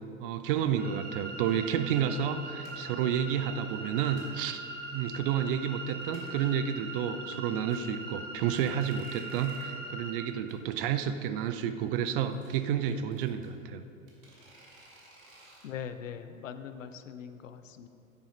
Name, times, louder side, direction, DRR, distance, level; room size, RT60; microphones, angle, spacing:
voice 1, 0.2-13.8, right 9 dB, 40° right, 10 dB, 0.6 m, -30 dB
sound 1, 0.8-10.2, right 2 dB, 20° right, 2.1 m, -41 dB
sound 2, 1.5-1.6 2.1-2.3 2.6-3.0 3.7-4.5 4.9-5.4 5.7-5.8 6.0-6.5 6.9-7.0 7.3-7.8 8.3-9.8 10.1-10.2 10.5-10.6 10.8-10.9 12.0-13.5 14.1-15.7, right 2 dB, 70° right, 2.4 m, -55 dB
voice 2, 15.6-17.9, left 8 dB, 65° left, 10 dB, 0.7 m, -41 dB
9.7 x 9.5 x 4.0 m, 2.8 s
figure-of-eight pair, 85°, 42 cm